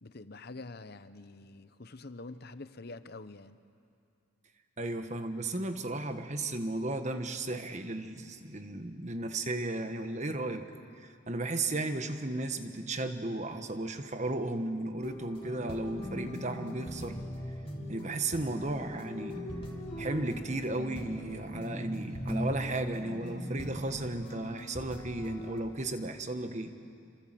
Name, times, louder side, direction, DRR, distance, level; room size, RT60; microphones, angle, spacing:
voice 1, 0.0-3.6, left 3 dB, 50° left, 12 dB, 0.9 m, -46 dB
voice 2, 4.8-10.6 11.0-17.2 17.9-19.4 20.0-26.7, right 2 dB, 35° right, 8 dB, 1.4 m, -35 dB
sound 1, 15.0-25.6, equal, 25° left, 2.9 m, -44 dB
sound 2, 15.4-24.3, equal, 5° left, 7.1 m, -41 dB
28.0 x 25.5 x 7.7 m, 2.5 s
head